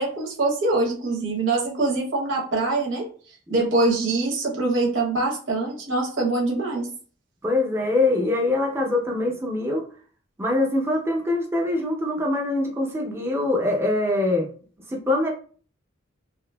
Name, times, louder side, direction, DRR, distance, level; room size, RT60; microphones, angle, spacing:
voice 1, 0.0-3.1 3.5-6.9, right 2 dB, 75° right, -2 dB, 0.9 m, -24 dB
voice 2, 7.4-9.8 10.4-14.5 14.9-15.3, left 2 dB, 10° right, 0 dB, 0.6 m, -23 dB
2.8 x 2.6 x 2.2 m, 0.42 s
head